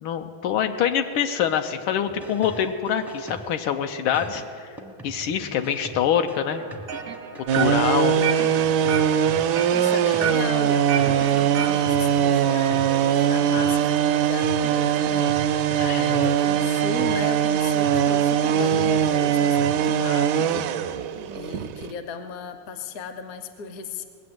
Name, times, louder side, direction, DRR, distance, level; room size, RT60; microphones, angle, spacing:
voice 1, 0.0-4.4 5.0-6.7 7.4-8.3 15.8-16.3, left 8 dB, 80° left, 6 dB, 1.5 m, -25 dB
sound 1, 2.1-3.7 4.1-10.6 11.0-14.0 14.4-17.4 17.8-19.9, right 1 dB, 5° right, 0.3 m, -41 dB
sound 2, 6.5-11.9, right 7 dB, 60° right, 0.6 m, -33 dB
sound 3, 7.5-21.9, right 9 dB, 80° right, 0.9 m, -21 dB
voice 2, 9.7-15.3 15.7-20.6 21.3-24.0, left 5 dB, 55° left, 8 dB, 1.1 m, -36 dB
20.0 x 7.9 x 7.8 m, 2.5 s
omnidirectional pair, 2.3 m